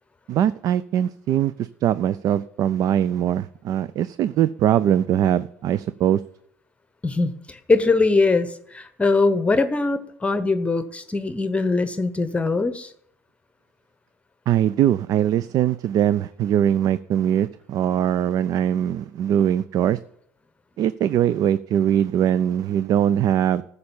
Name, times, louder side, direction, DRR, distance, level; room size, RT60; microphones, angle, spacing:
voice 1, 0.3-6.2 14.5-20.0 20.8-23.6, right 10 dB, 50° right, 17 dB, 0.4 m, -21 dB
voice 2, 7.0-12.9, left 3 dB, 15° left, 11 dB, 0.9 m, -22 dB
14.0 x 6.7 x 7.1 m, 0.72 s
hypercardioid pair, 75°, 8 cm